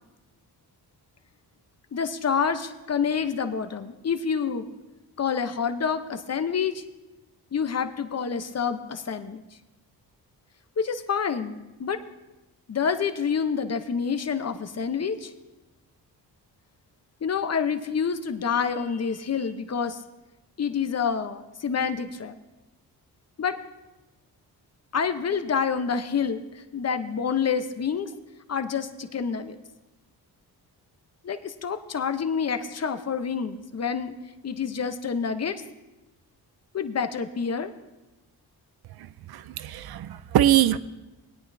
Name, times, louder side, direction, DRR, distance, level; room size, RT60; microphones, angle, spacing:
voice 1, 1.9-4.7 5.2-6.8 7.5-9.4 10.8-12.0 12.7-15.3 17.2-20.0 20.6-22.4 23.4-23.6 24.9-26.5 26.7-28.1 28.5-29.6 31.2-34.1 34.4-35.6 36.7-37.7, left 6 dB, 40° left, 9 dB, 0.9 m, -27 dB
voice 2, 39.0-40.8, right 12 dB, 65° right, 16 dB, 0.6 m, -23 dB
19.5 x 9.2 x 2.7 m, 1.0 s
cardioid pair, 75°, 40 cm